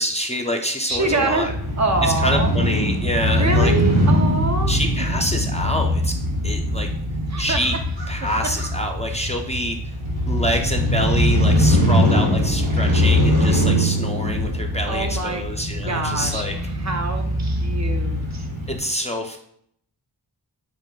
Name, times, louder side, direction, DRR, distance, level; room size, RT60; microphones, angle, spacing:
voice 1, 0.0-1.5 2.0-3.7 4.7-6.1 6.4-6.9 7.4-7.8 8.1-9.8 10.3-16.5 18.7-19.4, equal, 15° left, 2 dB, 0.4 m, -26 dB
voice 2, 0.9-1.5 1.8-2.5 3.2-4.7 7.3-7.6 14.9-15.4 15.8-18.5, right 2 dB, 40° right, 4 dB, 0.5 m, -25 dB
Crow / Motorcycle, 0.9-18.8, equal, 85° right, 1.1 m, -21 dB
4.0 x 2.5 x 3.7 m, 0.68 s
wide cardioid pair, 55°, 43 cm